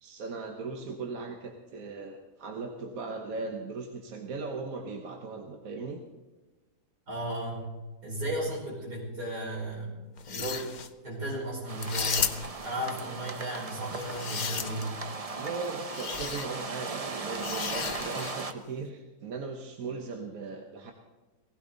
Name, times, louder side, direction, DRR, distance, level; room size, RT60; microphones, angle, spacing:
voice 1, 0.0-6.0 15.4-20.9, right 4 dB, 60° right, 3 dB, 1.5 m, -38 dB
voice 2, 7.1-7.7 8.0-10.8 11.0-12.3 12.6-14.9, right 1 dB, 80° right, -4 dB, 5.7 m, -35 dB
sound 1, 10.2-10.9 11.8-12.7 13.8-15.0 15.9-16.5 17.4-18.5, left 6 dB, 55° left, 0.5 m, -34 dB
sound 2, 11.7-18.5, right 3 dB, 35° right, 0.5 m, -38 dB
18.0 x 16.0 x 4.0 m, 1.2 s
omnidirectional pair, 1.7 m